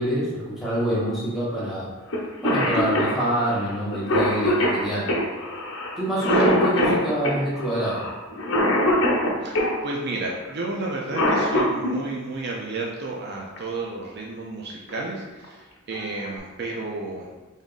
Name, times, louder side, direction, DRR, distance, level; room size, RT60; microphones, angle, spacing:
voice 1, 0.0-1.9 2.4-5.2 6.0-8.1, right 1 dB, ahead, -9 dB, 1.0 m, -26 dB
Cough, 2.1-2.2 2.4-9.7 10.9-11.9 13.6-13.7 14.7-15.0 15.4-15.5 15.9-16.4, left 1 dB, 65° left, 0.8 m, -23 dB
voice 2, 9.4-17.3, right 2 dB, 50° right, -2 dB, 0.5 m, -32 dB
3.5 x 2.6 x 3.8 m, 1.2 s
head